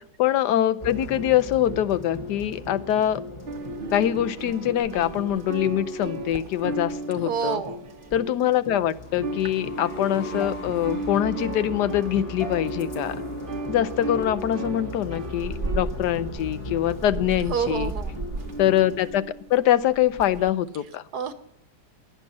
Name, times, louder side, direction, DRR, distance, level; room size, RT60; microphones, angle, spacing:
voice 1, 0.2-3.2 3.9-7.6 8.1-13.2 13.7-17.9 18.6-21.0, left 11 dB, 85° left, 14 dB, 1.3 m, -24 dB
sound 1, 0.8-19.0, left 2 dB, 25° left, 0.8 m, -38 dB
sound 2, 3.5-8.8 9.1-20.5, right 3 dB, 40° right, 0.9 m, -35 dB
voice 2, 7.2-7.8 17.5-18.1 21.1-21.3, right 7 dB, 75° right, 10 dB, 1.6 m, -28 dB
17.0 x 10.0 x 7.3 m, 0.82 s
omnidirectional pair, 1.7 m